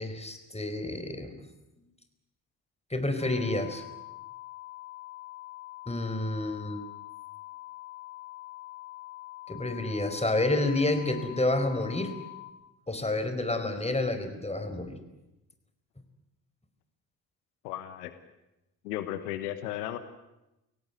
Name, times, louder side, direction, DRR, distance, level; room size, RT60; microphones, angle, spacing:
voice 1, 0.0-1.4 2.9-3.8 5.9-6.8 9.5-12.1 12.9-15.0, left 2 dB, 15° left, 8 dB, 4.5 m, -29 dB
sound 1, 3.2-12.5, left 18 dB, 60° left, 4.4 m, -45 dB
voice 2, 17.6-18.1 18.8-20.0, left 13 dB, 80° left, 11 dB, 1.2 m, -35 dB
25.0 x 17.0 x 9.5 m, 0.95 s
hypercardioid pair, 45°, 46 cm